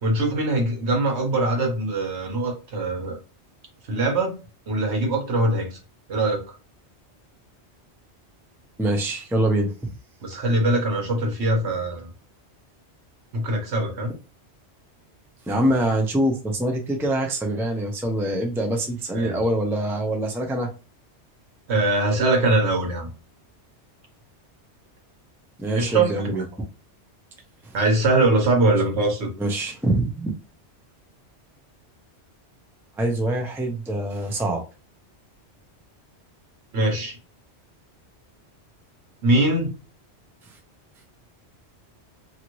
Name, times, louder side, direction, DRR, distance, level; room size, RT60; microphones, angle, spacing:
voice 1, 0.0-3.2 3.9-4.4 4.7-5.8 6.1-6.4 10.2-12.1 13.3-14.1 19.1-19.4 21.7-23.1 25.7-26.2 27.7-29.3 36.7-37.2 39.2-39.7, right 2 dB, 70° right, 1.2 m, -22 dB
voice 2, 8.8-9.9 15.5-20.7 25.6-26.4 27.6-27.8 29.4-30.3 33.0-34.6, right 1 dB, 5° right, 0.4 m, -24 dB
2.8 x 2.6 x 3.0 m
omnidirectional pair, 1.2 m